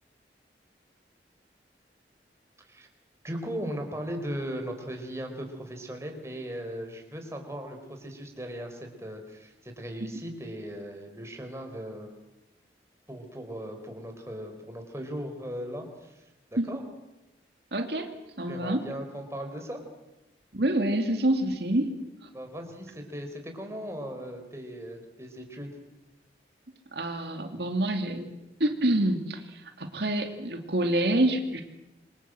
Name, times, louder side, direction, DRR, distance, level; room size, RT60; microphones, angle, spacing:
voice 1, 3.2-12.1 13.1-16.2 16.5-16.8 18.5-19.8 22.3-25.7, equal, 15° right, 4 dB, 4.0 m, -38 dB
voice 2, 17.7-18.1 18.4-18.9 20.5-22.0 26.9-28.3 28.6-31.6, right 1 dB, 70° right, 5 dB, 2.5 m, -27 dB
27.5 x 24.0 x 7.7 m, 0.95 s
head